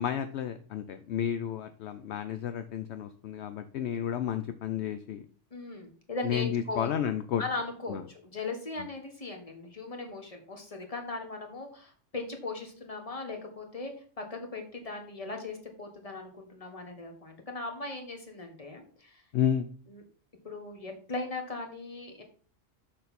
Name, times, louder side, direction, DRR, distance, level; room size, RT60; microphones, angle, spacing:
voice 1, 0.0-5.2 6.2-7.4 7.9-8.0 19.3-19.7, left 9 dB, 70° left, 9 dB, 0.8 m, -31 dB
voice 2, 5.5-6.9 7.4-19.2 19.9-20.0 20.4-22.2, left 3 dB, 30° left, 3 dB, 1.5 m, -38 dB
6.8 x 5.9 x 4.1 m, 0.43 s
omnidirectional pair, 1.3 m